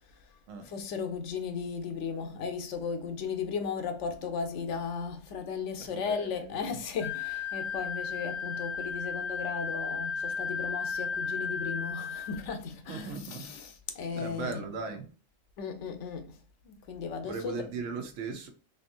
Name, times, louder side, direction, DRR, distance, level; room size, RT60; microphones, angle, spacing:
voice 1, 0.6-14.7 15.6-16.4 16.7-17.7, left 6 dB, 70° left, 0.9 m, -36 dB
voice 2, 5.8-6.7 12.9-13.5 14.1-15.0 17.2-18.5, right 4 dB, 75° right, 1.1 m, -38 dB
Wind instrument woodwind instrument, 7.0-12.5, left 5 dB, 85° left, 1.5 m, -34 dB
3.4 x 2.7 x 2.5 m
omnidirectional pair, 1.3 m